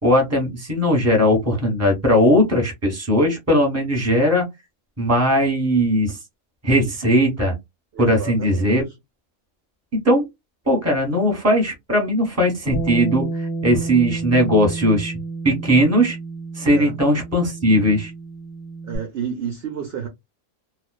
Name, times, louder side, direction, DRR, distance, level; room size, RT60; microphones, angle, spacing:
voice 1, 0.0-4.4 5.0-6.2 6.6-7.5 8.0-8.8 10.0-10.3 10.7-15.1 15.4-16.2 16.5-18.1, equal, 10° right, 1.0 m, -18 dB
voice 2, 7.9-8.8 12.5-12.6 16.7-16.9 18.8-20.1, right 8 dB, 60° right, 0.7 m, -30 dB
Bass guitar, 12.7-19.0, right 3 dB, 85° left, 1.1 m, -30 dB
2.4 x 2.3 x 2.3 m
omnidirectional pair, 1.5 m